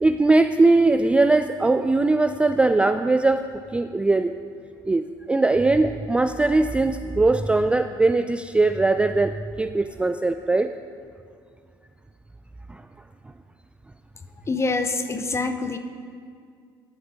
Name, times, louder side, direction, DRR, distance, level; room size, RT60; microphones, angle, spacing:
voice 1, 0.0-3.5 3.7-4.3 4.9-10.7, right 2 dB, 10° right, 9 dB, 0.3 m, -20 dB
voice 2, 14.5-15.8, left 3 dB, 25° left, 8 dB, 0.9 m, -25 dB
12.0 x 6.8 x 5.1 m, 2.2 s
hypercardioid pair, 60°, 12 cm